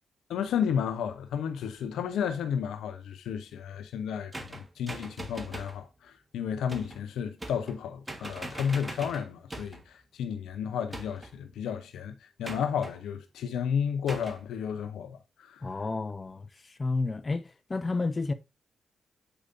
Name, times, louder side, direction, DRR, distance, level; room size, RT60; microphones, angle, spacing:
voice 1, 0.3-15.6, left 7 dB, 80° left, 0.7 m, -32 dB
sound 1, 4.3-5.8 6.7-7.0 7.4-9.9 10.9-11.4 12.4-13.0 14.1-14.4, right 1 dB, 25° right, 1.5 m, -41 dB
voice 2, 15.6-18.3, left 3 dB, 35° left, 1.0 m, -31 dB
7.9 x 4.9 x 2.6 m
supercardioid pair, 45°, 0 cm